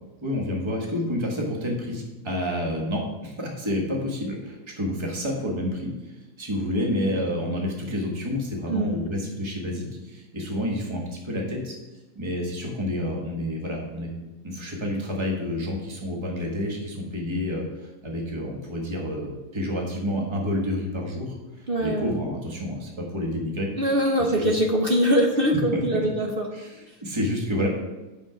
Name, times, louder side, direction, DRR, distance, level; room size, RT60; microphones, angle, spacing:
voice 1, 0.2-6.1 6.4-11.7 12.1-14.1 14.4-23.7 24.3-24.5 25.7-25.8 26.5-27.7, left 1 dB, 15° right, -1 dB, 1.4 m, -29 dB
voice 2, 8.7-9.1 21.7-22.2 23.8-26.3 26.9-27.0, equal, 55° right, 0 dB, 0.6 m, -23 dB
7.3 x 6.3 x 5.1 m, 1.1 s
omnidirectional pair, 2.0 m